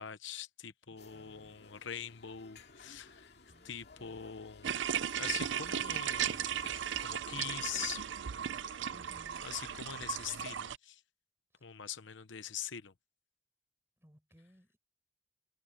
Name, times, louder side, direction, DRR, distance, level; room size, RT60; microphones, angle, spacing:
voice 1, 0.0-3.3 3.6-4.7 5.1-6.4 7.0-8.1 8.5-8.9 9.4-11.0 11.6-12.9, left 9 dB, 70° left, 0.9 m, -43 dB
voice 2, 0.9-1.6 3.5-4.3 8.8-9.5 11.5-11.8 14.0-14.8, equal, 10° right, 7.8 m, -63 dB
sound 1, 1.0-7.1, left 3 dB, 55° left, 2.4 m, -57 dB
sound 2, 4.6-10.8, right 9 dB, 70° right, 0.5 m, -36 dB
head